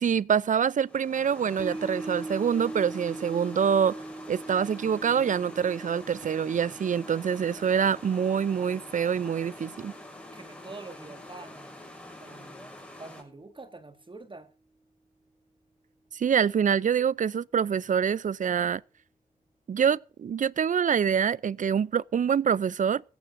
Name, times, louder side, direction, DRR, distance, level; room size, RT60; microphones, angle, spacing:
voice 1, 0.0-4.0 4.3-9.9 16.1-18.8 19.7-23.0, right 7 dB, 50° right, 0.5 m, -25 dB
sound 1, 0.8-13.2, left 1 dB, 10° left, 5.7 m, -46 dB
sound 2, 1.6-12.0 12.3-12.4, right 2 dB, 35° left, 6.4 m, -42 dB
voice 2, 10.3-11.8 12.2-14.5, right 3 dB, 30° right, 1.8 m, -46 dB
16.0 x 14.5 x 2.6 m
supercardioid pair, 50°, 16 cm